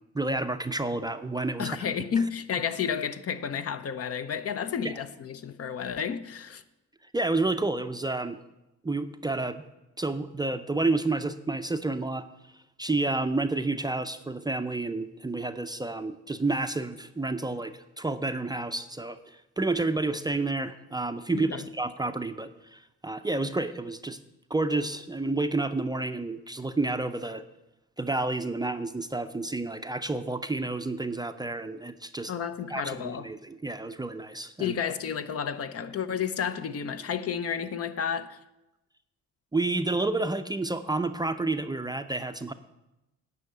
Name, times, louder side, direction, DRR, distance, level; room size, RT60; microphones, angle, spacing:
voice 1, 0.1-1.8 4.8-5.0 7.1-8.4 8.8-9.6 10.0-12.2 12.8-24.2 24.5-27.4 28.0-32.3 32.7-34.8 39.5-42.5, right 2 dB, 15° right, 0.5 m, -30 dB
voice 2, 1.6-6.6 21.3-21.7 32.3-33.3 34.6-38.4, left 7 dB, 50° left, 0.7 m, -31 dB
9.6 x 5.6 x 8.1 m
cardioid pair, 90°, 30 cm